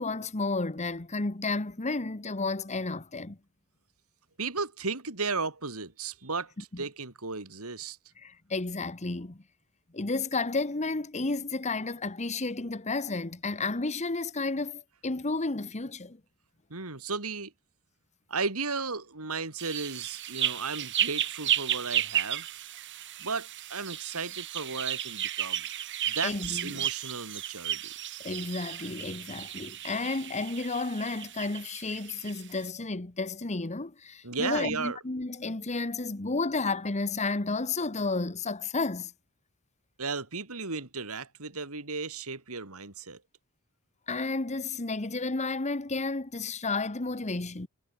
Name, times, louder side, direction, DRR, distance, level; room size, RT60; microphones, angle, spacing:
voice 1, 0.0-3.4 6.7-6.8 8.2-9.4 9.9-16.2 26.2-26.9 28.2-39.1 44.1-47.7, left 3 dB, 30° left, 1.2 m, -32 dB
voice 2, 4.4-8.0 16.7-17.5 18.3-22.6 23.2-25.7 26.1-27.9 34.2-35.0 40.0-43.2, right 4 dB, 70° right, 3.3 m, -35 dB
sound 1, 19.6-32.4, right 11 dB, 55° right, 1.5 m, -34 dB
head